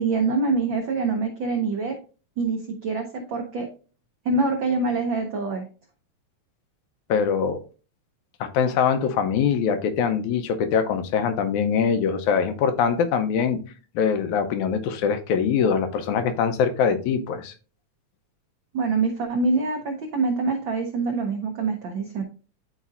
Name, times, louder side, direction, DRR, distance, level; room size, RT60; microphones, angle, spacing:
voice 1, 0.0-2.0 2.4-3.7 4.2-5.6 18.7-22.2, right 3 dB, 85° right, 1.0 m, -25 dB
voice 2, 7.1-7.6 8.4-13.6 14.0-17.5, left 6 dB, 85° left, 2.1 m, -23 dB
11.5 x 4.0 x 2.4 m
omnidirectional pair, 3.3 m